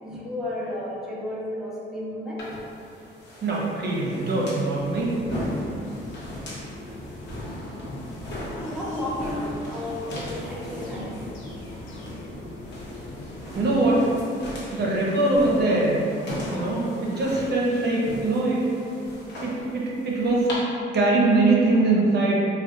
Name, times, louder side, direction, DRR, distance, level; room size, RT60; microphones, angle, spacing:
voice 1, 0.0-2.5 8.6-11.2, left 1 dB, ahead, -7 dB, 0.6 m, -32 dB
sound 1, 2.4-20.5, equal, 60° left, 0.9 m, -38 dB
voice 2, 3.4-5.1 13.5-14.1 14.7-16.0 16.5-18.7 19.4-22.4, right 2 dB, 55° right, -4 dB, 0.6 m, -22 dB
sound 2, 4.8-14.2, left 1 dB, 85° left, 0.5 m, -40 dB
2.4 x 2.2 x 3.7 m, 2.6 s
cardioid pair, 90°, 20 cm